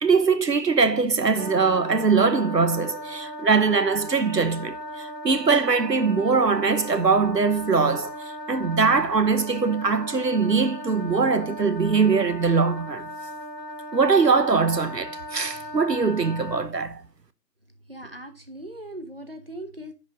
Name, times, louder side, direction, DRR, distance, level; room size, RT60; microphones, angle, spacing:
voice 1, 0.0-13.1 13.9-17.0, right 4 dB, 75° right, 1.1 m, -22 dB
Wind instrument woodwind instrument, 1.4-16.7, equal, 90° left, 1.9 m, -37 dB
voice 2, 17.9-19.9, right 1 dB, 35° right, 1.3 m, -39 dB
10.5 x 5.4 x 5.2 m
figure-of-eight pair, 180°, 49 cm